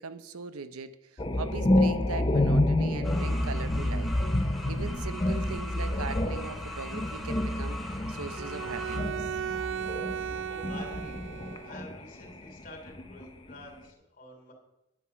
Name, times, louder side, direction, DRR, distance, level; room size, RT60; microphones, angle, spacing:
voice 1, 0.0-4.1 4.4-9.4, right 4 dB, 75° right, 11 dB, 0.8 m, -40 dB
sound 1, 1.2-12.0 12.3-13.5, left 1 dB, 25° left, 0.8 m, -29 dB
sound 2, 3.0-9.0, equal, ahead, 1.5 m, -42 dB
Bowed string instrument, 8.4-11.9, right 9 dB, 60° right, 0.4 m, -36 dB
voice 2, 10.5-14.5, left 1 dB, 40° left, 3 dB, 3.3 m, -49 dB
10.0 x 9.4 x 5.8 m, 0.91 s
head